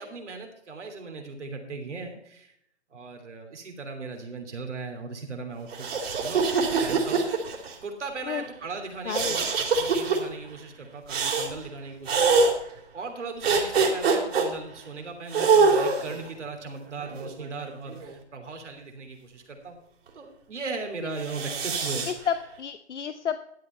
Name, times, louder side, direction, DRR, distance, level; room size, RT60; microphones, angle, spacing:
voice 1, 0.0-2.5 2.9-5.9 6.2-6.5 6.8-7.3 7.8-19.8 20.1-22.3, right 3 dB, 80° right, 4 dB, 3.1 m, -38 dB
sound 1, 5.7-7.7 9.1-10.2 11.1-11.5 12.1-12.5 13.4-14.5 15.3-16.2 17.0-18.1 21.2-22.1, right 4 dB, 60° right, 3.4 m, -24 dB
voice 2, 9.1-9.4 22.1-23.4, left 7 dB, 75° left, 10 dB, 0.9 m, -30 dB
12.5 x 8.3 x 4.3 m, 0.73 s
hypercardioid pair, 150°, 35 cm